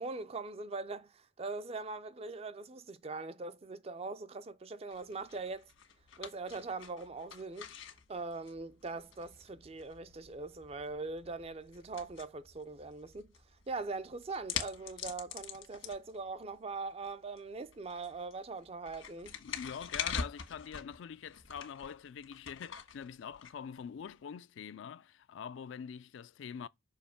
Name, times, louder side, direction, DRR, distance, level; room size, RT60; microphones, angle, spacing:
voice 1, 0.0-5.7 6.2-7.7 8.1-13.3 13.7-19.3, right 3 dB, 30° right, 0.4 m, -41 dB
sound 1, 4.9-24.1, left 7 dB, 85° left, 1.5 m, -45 dB
voice 2, 19.4-26.7, left 7 dB, 70° left, 0.3 m, -45 dB
6.4 x 2.9 x 5.6 m
head